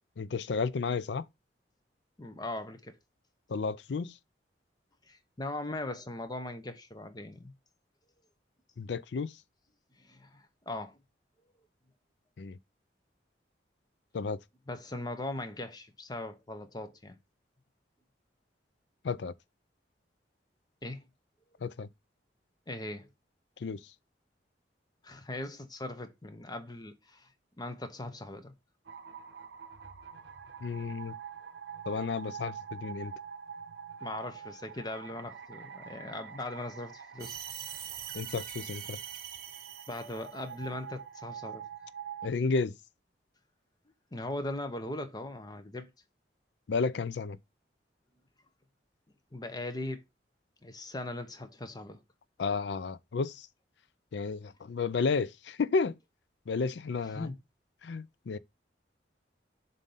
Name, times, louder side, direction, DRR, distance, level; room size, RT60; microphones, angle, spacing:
voice 1, 0.2-1.3 3.5-4.2 8.8-9.3 12.4-12.6 14.1-14.4 19.0-19.3 21.6-21.9 23.6-23.8 30.6-31.1 31.9-33.1 38.1-39.0 42.2-42.7 46.7-47.4 52.4-53.5 54.1-56.0 56.5-57.3 57.8-58.4, left 4 dB, 70° left, 0.4 m, -32 dB
voice 2, 2.2-3.0 5.1-7.5 10.0-11.0 14.7-17.2 20.8-21.0 22.7-23.1 25.0-27.3 27.6-28.5 34.0-37.4 39.9-41.6 44.1-45.9 49.3-50.0 50.6-52.0 57.0-57.4, left 2 dB, 20° left, 0.8 m, -39 dB
sound 1, 28.8-42.3, right 7 dB, 70° right, 0.7 m, -46 dB
sound 2, 37.2-40.5, right 10 dB, 55° right, 0.9 m, -43 dB
7.3 x 2.7 x 5.4 m
head